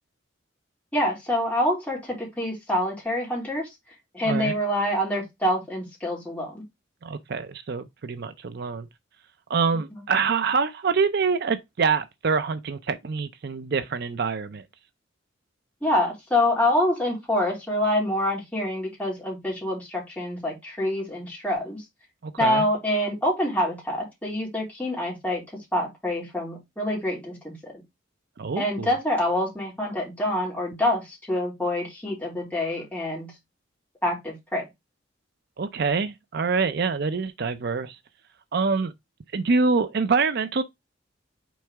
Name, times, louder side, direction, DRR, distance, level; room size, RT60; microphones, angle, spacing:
voice 1, 0.9-3.7 4.1-6.6 9.9-10.0 15.8-21.8 22.4-25.4 25.7-27.6 28.6-33.3 34.0-34.6, left 1 dB, 10° left, 3.4 m, -26 dB
voice 2, 7.0-8.9 9.5-14.6 22.2-22.6 28.4-28.9 35.6-38.0 38.5-38.9 39.3-40.6, right 5 dB, 55° right, 0.5 m, -25 dB
6.2 x 4.6 x 3.4 m
head